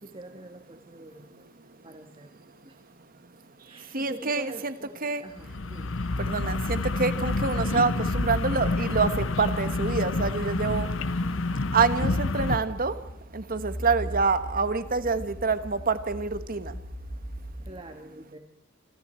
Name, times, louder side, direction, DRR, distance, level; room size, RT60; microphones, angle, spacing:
voice 1, 0.0-1.5 1.8-2.8 3.6-6.0 11.2-11.6 14.0-14.2 17.7-18.4, right 1 dB, 30° right, 5 dB, 1.6 m, -45 dB
voice 2, 3.9-4.7 5.0-5.2 6.2-10.9 11.7-13.0 13.3-16.7, right 4 dB, 45° right, 11 dB, 1.4 m, -26 dB
sound 1, 5.4-12.6, left 2 dB, 75° left, 0.9 m, -28 dB
sound 2, 10.7-17.6, equal, 50° left, 7.9 m, -39 dB
27.5 x 25.5 x 4.5 m, 0.84 s
head